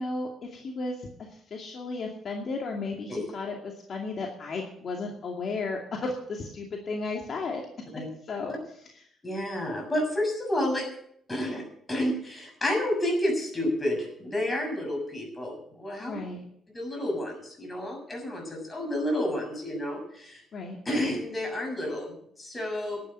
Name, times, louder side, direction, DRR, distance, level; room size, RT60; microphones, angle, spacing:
voice 1, 0.0-7.7 8.2-8.5 16.0-16.4 20.5-20.8, left 3 dB, 55° left, 0 dB, 2.4 m, -34 dB
voice 2, 9.2-10.9 11.3-11.6 11.9-16.2 16.7-20.4 20.9-23.0, left 1 dB, 20° left, 2 dB, 6.9 m, -30 dB
12.0 x 8.9 x 9.2 m, 0.69 s
cardioid pair, 90°, 0 cm